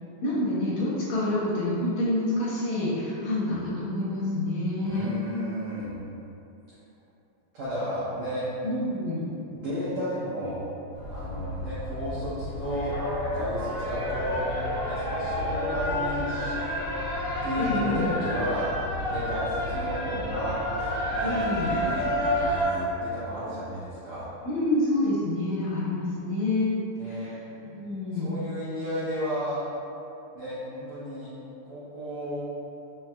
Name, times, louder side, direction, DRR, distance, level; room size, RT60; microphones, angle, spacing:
voice 1, 0.2-5.1 8.6-9.2 17.6-18.0 21.2-21.7 24.4-26.7 27.0-28.3, left 1 dB, 75° left, -8 dB, 2.1 m, -28 dB
voice 2, 4.8-6.0 7.5-8.5 9.5-10.6 11.1-12.9 13.3-14.4 14.8-16.7 17.4-18.7 19.1-20.6 21.1-24.3 27.0-27.3 28.1-29.6 30.3-31.3 31.6-32.4, equal, 80° right, -12 dB, 1.6 m, -33 dB
sound 1, 10.9-22.6, left 1 dB, 55° left, 1.0 m, -31 dB
sound 2, 20.7-22.9, right 1 dB, 65° right, 1.9 m, -28 dB
5.7 x 3.0 x 2.2 m, 2.9 s
omnidirectional pair, 4.3 m